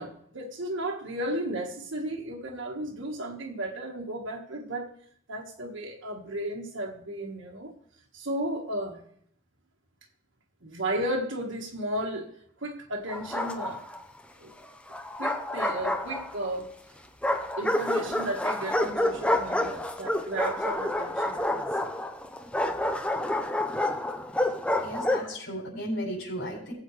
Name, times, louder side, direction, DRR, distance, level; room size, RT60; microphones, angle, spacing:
voice 1, 0.0-4.9 5.3-7.7 8.1-9.0 10.6-12.3 12.6-13.8 14.4-14.5 15.2-16.7 17.6-21.6, right 1 dB, 80° right, 0 dB, 1.6 m, -34 dB
Bark, 13.1-14.0 14.9-16.5 17.2-25.3, left 1 dB, 5° left, 0.7 m, -28 dB
voice 2, 24.8-26.7, equal, 85° left, -10 dB, 6.3 m, -34 dB
20.0 x 8.0 x 3.2 m, 0.65 s
head